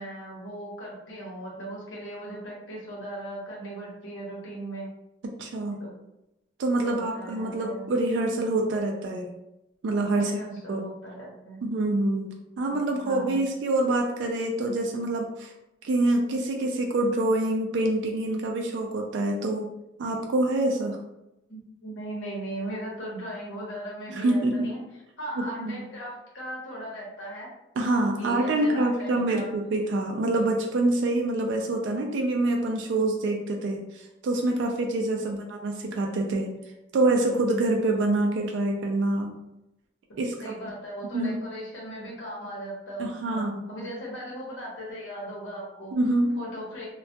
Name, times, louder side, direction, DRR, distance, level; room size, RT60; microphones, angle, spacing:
voice 1, 0.0-4.9 5.7-6.0 6.8-7.9 10.1-11.6 12.7-12.8 13.0-13.4 21.5-24.8 25.2-27.5 28.2-29.7 35.2-35.4 40.4-45.9 46.4-46.9, right 1 dB, 85° left, -4 dB, 0.9 m, -38 dB
voice 2, 5.2-5.8 6.6-9.3 9.8-10.4 10.7-10.9 11.6-15.5 15.8-19.7 20.0-21.0 24.1-24.7 25.4-25.8 27.8-36.5 36.9-39.3 40.2-40.5 41.1-41.4 43.0-43.6 45.9-46.4, right 2 dB, 70° right, 1 dB, 0.3 m, -26 dB
2.2 x 2.2 x 2.6 m, 0.88 s
head